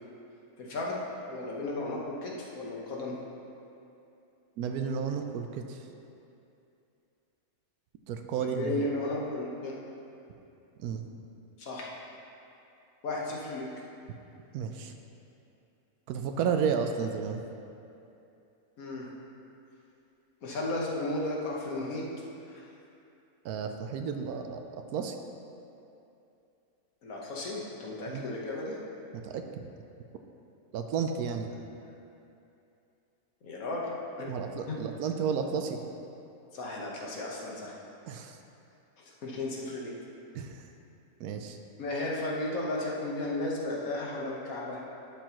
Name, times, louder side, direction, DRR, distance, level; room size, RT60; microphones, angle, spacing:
voice 1, 0.6-3.1 8.3-9.7 11.6-11.9 13.0-13.7 18.8-19.1 20.4-22.0 22.5-22.7 27.0-28.8 33.4-33.9 34.2-34.7 36.5-37.8 39.0-39.9 41.8-44.8, left 2 dB, 70° left, -3 dB, 1.6 m, -34 dB
voice 2, 4.6-5.8 8.1-8.9 10.8-11.0 14.5-14.9 16.1-17.4 23.4-24.6 24.9-25.1 28.1-28.2 29.1-29.6 30.7-31.5 34.3-35.8 38.1-38.4 40.3-40.6 41.2-41.6, right 6 dB, 90° right, 5 dB, 1.1 m, -32 dB
12.0 x 7.0 x 3.0 m, 2.7 s
omnidirectional pair, 1.5 m